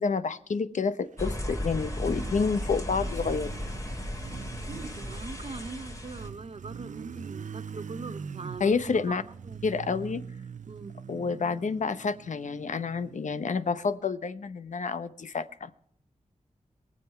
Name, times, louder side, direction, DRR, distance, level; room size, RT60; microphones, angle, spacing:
voice 1, 0.0-3.5 8.6-9.2 9.6-10.2 11.1-15.7, left 5 dB, 75° left, 13 dB, 0.9 m, -29 dB
sound 1, 1.2-6.3, left 1 dB, 25° left, 2.6 m, -35 dB
Motorcycle, 1.2-13.8, right 6 dB, 75° right, 0.6 m, -43 dB
voice 2, 4.7-8.7 9.1-9.2 9.4-9.6 10.7-10.9, right 4 dB, 50° right, 12 dB, 1.1 m, -41 dB
22.5 x 7.8 x 5.7 m, 0.65 s
wide cardioid pair, 120°, 13 cm